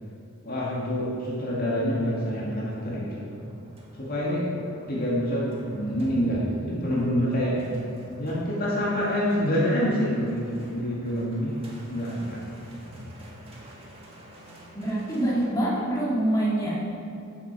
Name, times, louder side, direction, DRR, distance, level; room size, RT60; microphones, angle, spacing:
voice 1, 0.4-3.3 4.0-4.4 4.9-7.6 8.2-11.6 11.9-12.4, equal, 45° left, -6 dB, 2.0 m, -27 dB
sound 1, 3.2-15.5, equal, 25° right, 1.6 m, -44 dB
voice 2, 14.7-16.8, right 1 dB, 15° left, -7 dB, 2.3 m, -25 dB
13.5 x 7.1 x 4.7 m, 2.7 s
head